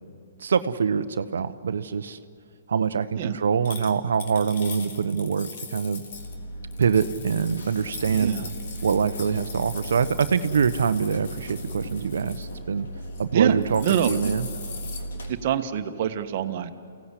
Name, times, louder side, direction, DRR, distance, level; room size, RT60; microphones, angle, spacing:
voice 1, 0.4-2.2 2.7-6.0 6.8-8.4 8.8-12.9 13.2-14.5, right 6 dB, 75° right, 12 dB, 1.0 m, -24 dB
sound 1, 3.6-6.3 6.7-12.5 13.0-13.2 13.5-15.0, left 5 dB, 55° left, 3.3 m, -41 dB
sound 2, 6.1-15.3, equal, 75° left, 3.4 m, -37 dB
voice 2, 8.1-8.5 13.3-13.6 13.8-14.3 15.3-16.7, right 10 dB, 50° right, 8 dB, 1.5 m, -25 dB
29.0 x 17.0 x 8.3 m, 2.4 s
hypercardioid pair, 130°, 0 cm